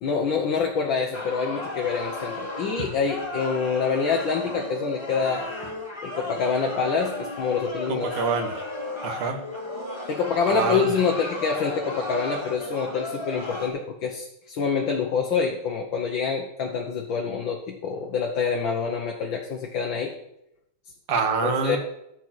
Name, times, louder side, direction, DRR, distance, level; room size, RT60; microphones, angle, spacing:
voice 1, 0.0-5.5 6.0-8.1 10.1-20.1 21.4-21.8, left 5 dB, 65° left, 1 dB, 1.7 m, -26 dB
sound 1, 1.1-13.7, left 1 dB, 15° left, 1.6 m, -34 dB
voice 2, 8.2-8.6 9.0-9.4 10.5-10.9 21.1-21.8, right 5 dB, 60° right, 5 dB, 1.9 m, -25 dB
13.5 x 4.5 x 7.4 m, 0.81 s
omnidirectional pair, 2.3 m